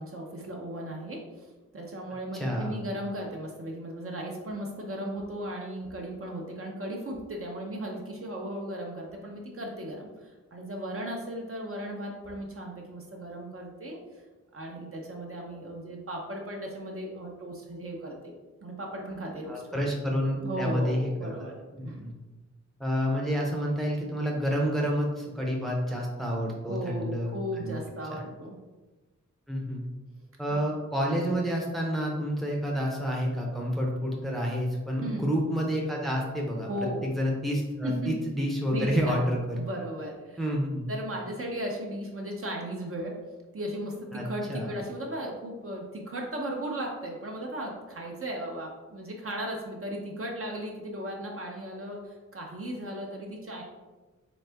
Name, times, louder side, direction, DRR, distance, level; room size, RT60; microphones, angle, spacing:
voice 1, 0.0-14.0 14.5-18.3 18.6-19.9 20.4-21.5 21.8-22.0 26.7-28.6 30.5-30.6 35.0-35.3 36.6-37.1 37.8-38.1 38.7-39.2 39.5-40.4 40.9-43.2 43.5-53.6, right 1 dB, 45° right, 0 dB, 0.8 m, -36 dB
voice 2, 2.3-2.8 19.5-21.3 21.7-22.1 22.8-27.3 27.6-27.7 28.1-28.2 29.5-29.8 30.4-39.6 40.4-40.9 44.1-44.7, equal, ahead, -2 dB, 0.7 m, -29 dB
4.0 x 3.6 x 3.4 m, 1.2 s
wide cardioid pair, 140°, 30 cm